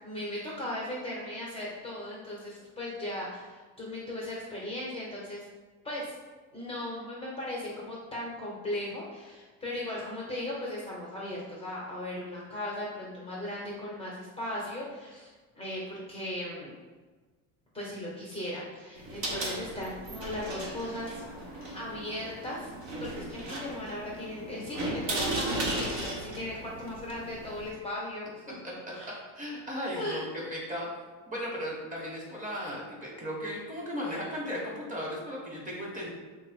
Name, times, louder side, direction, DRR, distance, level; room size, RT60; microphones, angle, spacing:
voice 1, 0.0-5.4 5.8-6.1 6.5-16.7 17.7-21.2 21.7-22.7 23.0-28.5 28.9-29.2 29.9-30.2, left 1 dB, 15° left, -6 dB, 0.8 m, -37 dB
sound 1, 19.0-27.7, right 1 dB, 50° right, 0.9 m, -36 dB
voice 2, 29.1-30.9 31.3-36.1, equal, 20° right, -4 dB, 1.1 m, -36 dB
3.3 x 2.1 x 4.1 m, 1.3 s
supercardioid pair, 120°, 37 cm